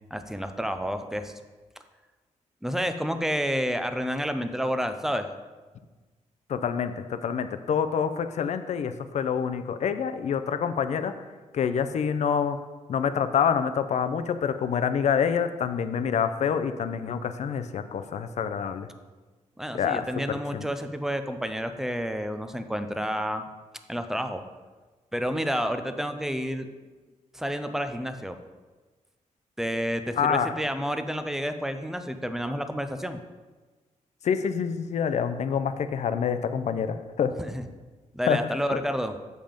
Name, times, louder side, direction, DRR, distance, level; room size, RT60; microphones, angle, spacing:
voice 1, 0.1-1.3 2.6-5.3 19.6-23.4 23.9-24.4 25.1-26.7 27.3-28.4 29.6-33.2 37.4-37.6 38.1-39.1, equal, 5° right, 8 dB, 0.5 m, -30 dB
voice 2, 6.5-11.1 11.5-12.6 12.9-18.9 19.7-20.0 20.5-20.7 30.2-30.5 34.2-37.4 38.3-38.4 38.7-38.8, left 7 dB, 65° left, 10 dB, 0.5 m, -27 dB
7.5 x 5.4 x 5.1 m, 1.3 s
wide cardioid pair, 125°, 13 cm